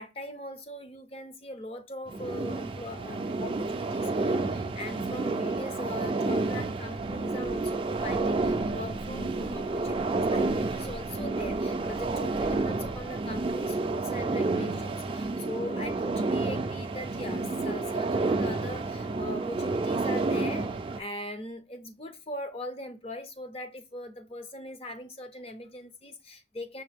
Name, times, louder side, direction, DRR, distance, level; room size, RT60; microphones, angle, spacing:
voice 1, 0.0-26.8, left 1 dB, 35° left, 0.6 m, -40 dB
sound 1, 2.1-21.0, right 3 dB, 30° right, 0.4 m, -30 dB
Walk footsteps, 6.9-14.2, equal, 75° left, 1.1 m, -47 dB
5.7 x 2.2 x 3.4 m
head